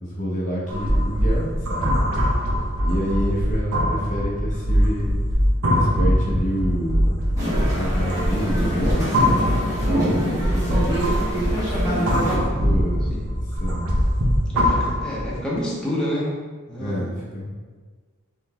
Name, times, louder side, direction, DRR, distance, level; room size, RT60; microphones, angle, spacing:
voice 1, 0.0-2.0 2.8-5.1 5.7-7.2 7.8-9.2 9.8-11.0 11.8-13.1 13.6-14.1 16.8-17.5, equal, 35° left, -5 dB, 0.8 m, -28 dB
sound 1, 0.7-15.4, equal, 85° right, 1.0 m, -22 dB
sound 2, 7.4-12.4, equal, 15° right, 1.3 m, -26 dB
voice 2, 14.5-16.3 16.7-17.1, equal, 5° left, -7 dB, 1.0 m, -28 dB
3.9 x 3.2 x 4.2 m, 1.5 s
head